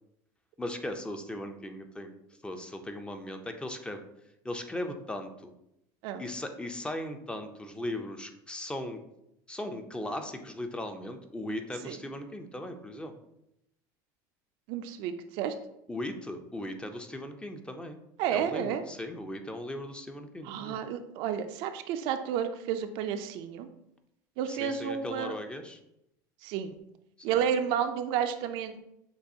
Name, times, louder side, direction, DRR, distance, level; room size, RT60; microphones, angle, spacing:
voice 1, 0.6-4.0 4.4-5.5 6.2-9.0 9.5-13.2 15.9-18.0 18.3-20.8 24.5-25.8 27.3-27.4, left 1 dB, 10° left, 6 dB, 0.4 m, -38 dB
voice 2, 14.7-15.5 18.2-18.8 20.4-23.7 24.4-25.4 26.4-26.7 27.2-28.8, right 8 dB, 60° right, 8 dB, 0.4 m, -31 dB
6.7 x 2.3 x 2.7 m, 0.82 s
supercardioid pair, 120°, 10 cm